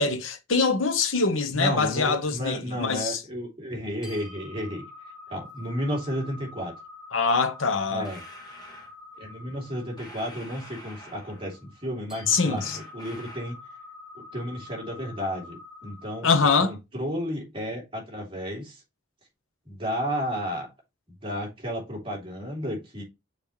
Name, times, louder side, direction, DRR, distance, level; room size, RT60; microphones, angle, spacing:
voice 1, 0.0-3.2 7.1-8.1 12.3-12.8 16.2-16.7, left 4 dB, 85° left, 1.1 m, -24 dB
voice 2, 1.5-4.9 5.3-6.7 7.9-8.2 9.2-13.6 14.2-16.3 16.6-18.8 19.6-20.7 21.2-23.0, equal, 25° right, 3.0 m, -32 dB
sound 1, 4.0-16.6, left 3 dB, 5° right, 2.5 m, -47 dB
sound 2, 8.0-8.9 10.0-11.6 12.6-13.6, equal, 20° left, 2.1 m, -47 dB
6.9 x 4.3 x 3.2 m
head